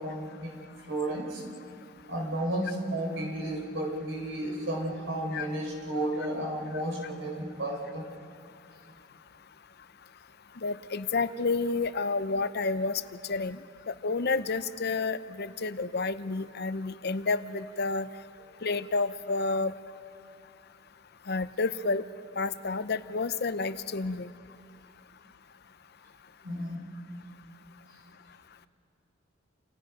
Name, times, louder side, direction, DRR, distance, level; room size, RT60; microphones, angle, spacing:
voice 1, 0.0-1.4 2.1-8.0 26.4-26.8, right 1 dB, 65° right, 0 dB, 4.7 m, -33 dB
voice 2, 10.6-13.0 13.3-13.6 13.9-18.1 18.6-19.7 21.3-22.0 22.4-24.3, left 3 dB, 55° left, 12 dB, 0.7 m, -30 dB
29.5 x 28.0 x 5.2 m, 2.5 s
head